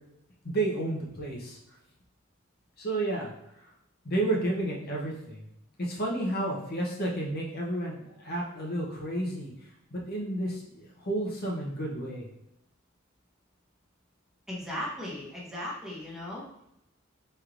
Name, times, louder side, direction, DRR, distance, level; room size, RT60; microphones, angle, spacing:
voice 1, 0.4-1.6 2.8-3.3 4.0-5.5 5.8-9.5 9.9-12.3, right 1 dB, 50° left, -2 dB, 0.8 m, -31 dB
voice 2, 14.5-16.4, left 1 dB, ahead, -6 dB, 0.9 m, -37 dB
4.4 x 3.3 x 2.5 m, 0.83 s
head